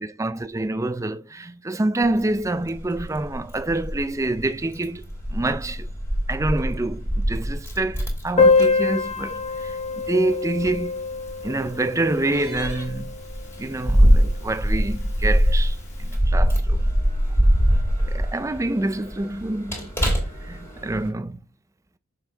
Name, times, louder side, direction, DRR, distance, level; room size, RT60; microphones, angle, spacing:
voice 1, 0.0-5.9 6.3-10.9 11.4-13.2 13.6-16.9 18.1-19.9 20.4-21.4, right 2 dB, 15° right, 0.4 m, -27 dB
Keys jangling, 2.0-21.1, equal, 10° left, 2.9 m, -24 dB
Piano, 8.4-13.7 14.0-14.1 14.3-14.5 14.8-14.9 15.7-15.8, left 4 dB, 30° left, 1.1 m, -24 dB
7.1 x 5.8 x 3.4 m
head